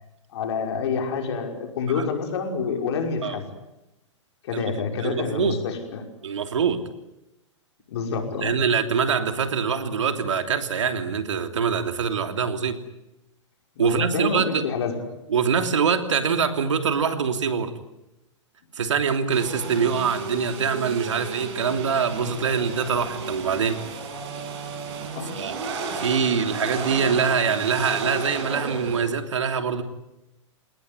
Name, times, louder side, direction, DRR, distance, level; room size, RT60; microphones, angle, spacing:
voice 1, 0.3-3.5 4.5-6.0 7.9-8.5 13.8-15.1 25.2-25.4, left 5 dB, 60° left, 4 dB, 5.7 m, -28 dB
voice 2, 4.5-5.6 6.2-6.9 8.4-12.8 13.8-14.6 15.3-17.7 18.7-23.8 25.3-25.6 25.9-29.8, right 6 dB, 75° right, 7 dB, 3.0 m, -24 dB
sound 1, 19.3-29.0, right 4 dB, 60° right, 7.0 m, -33 dB
28.5 x 19.0 x 9.7 m, 0.91 s
hypercardioid pair, 115°, 16 cm